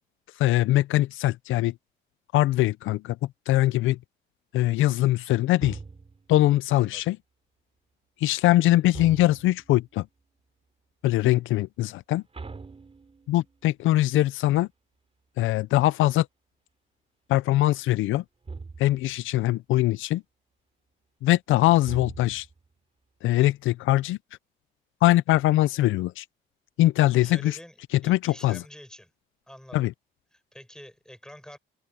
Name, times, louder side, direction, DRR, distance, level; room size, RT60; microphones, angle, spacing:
voice 1, 0.4-1.7 2.3-4.0 4.5-5.8 6.3-7.2 8.2-10.1 11.0-12.2 13.3-14.7 15.4-16.3 17.3-18.2 18.8-20.2 21.2-22.5 23.2-24.2 25.0-26.2 26.8-27.6 28.0-28.6 29.7-29.9, left 15 dB, 85° left, 0.5 m, -22 dB
sound 1, 5.6-6.4 8.9-9.7 12.3-13.5 18.4-19.1 21.8-22.7, right 4 dB, 30° right, 4.7 m, -41 dB
voice 2, 27.0-27.8 28.0-29.1 29.5-29.9 30.3-31.6, equal, 5° left, 6.5 m, -47 dB
cardioid pair, 90°, 20 cm